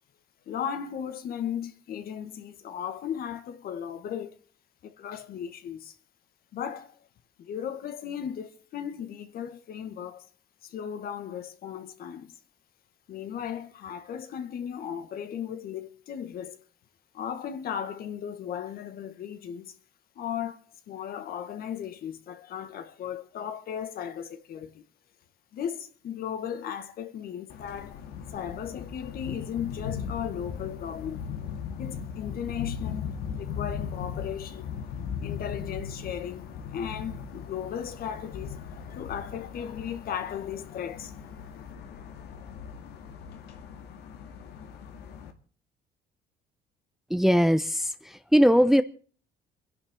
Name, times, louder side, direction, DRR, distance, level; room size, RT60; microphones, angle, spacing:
voice 1, 0.5-4.4 4.8-5.9 6.5-6.9 7.4-10.3 10.6-12.4 13.1-16.6 17.1-19.7 20.2-20.6 20.9-24.8 25.5-31.3 31.8-34.7 35.2-41.1, left 9 dB, 60° left, 1.9 m, -36 dB
sound 1, 27.5-45.3, left 7 dB, 75° left, 2.3 m, -38 dB
voice 2, 47.1-48.8, equal, ahead, 0.8 m, -21 dB
28.0 x 11.5 x 3.9 m
cardioid pair, 110°, 17 cm